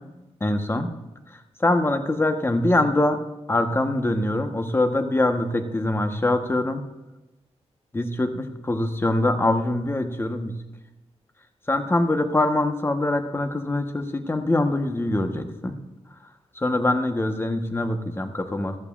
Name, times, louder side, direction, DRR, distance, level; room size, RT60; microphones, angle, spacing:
voice 1, 0.4-0.9 1.6-3.2 3.5-6.8 7.9-10.5 11.7-15.7 16.6-18.8, left 2 dB, 20° left, 7 dB, 1.1 m, -23 dB
14.0 x 12.0 x 2.5 m, 1.0 s
cardioid pair, 70°, 11 cm